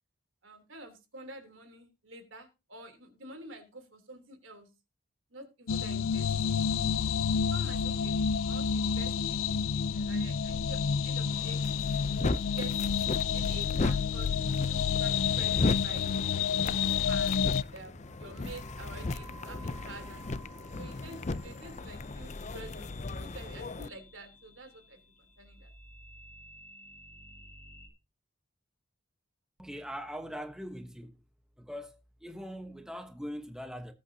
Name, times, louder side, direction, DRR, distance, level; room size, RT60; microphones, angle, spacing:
voice 1, 0.4-4.7 5.3-6.6 7.5-8.2 8.5-11.6 12.1-12.7 13.3-16.1 16.6-17.4 17.7-20.5 20.8-25.7, right 2 dB, 75° right, 3.4 m, -48 dB
sound 1, 5.7-17.6, left 6 dB, 85° left, 0.5 m, -29 dB
sound 2, 11.3-23.9, left 2 dB, 35° left, 0.5 m, -36 dB
sound 3, 16.2-27.9, equal, 15° left, 4.7 m, -53 dB
voice 2, 29.6-31.2 31.6-33.9, equal, 5° right, 1.1 m, -41 dB
20.5 x 8.6 x 2.8 m
head